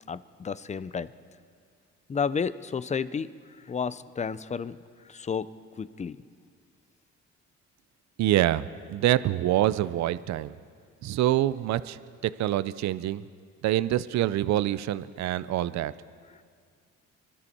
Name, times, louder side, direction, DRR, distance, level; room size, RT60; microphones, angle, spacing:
voice 1, 0.1-1.1 2.1-3.3 3.7-4.8 5.1-6.2, left 6 dB, 25° left, 15 dB, 0.4 m, -31 dB
voice 2, 8.2-10.6 11.0-13.2 13.6-15.9, right 13 dB, 65° right, 16 dB, 0.5 m, -26 dB
24.5 x 12.5 x 4.3 m, 2.1 s
cardioid pair, 90°, 30 cm